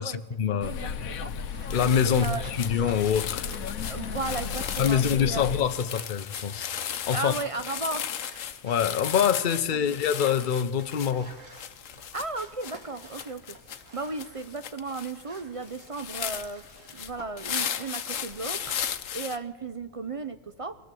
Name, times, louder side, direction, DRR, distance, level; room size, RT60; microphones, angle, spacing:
voice 1, 0.0-0.7 1.7-3.5 4.8-6.6 7.1-7.3 8.6-11.4, left 8 dB, 45° left, 10 dB, 0.8 m, -25 dB
voice 2, 0.5-1.3 2.0-2.4 3.9-5.4 7.1-8.1 9.7-10.0 12.1-13.6 13.9-16.6 16.9-20.7, right 3 dB, 45° right, 10 dB, 0.4 m, -35 dB
sound 1, 0.6-5.6, left 7 dB, 85° left, 1.3 m, -35 dB
sound 2, 1.3-1.4 1.7-19.4, left 9 dB, 65° left, 1.2 m, -36 dB
sound 3, 1.4-9.5 10.0-12.0 12.3-14.5 14.8-17.2 17.5-18.8, right 2 dB, 65° right, 3.3 m, -50 dB
23.0 x 15.5 x 7.6 m, 1.4 s
omnidirectional pair, 1.4 m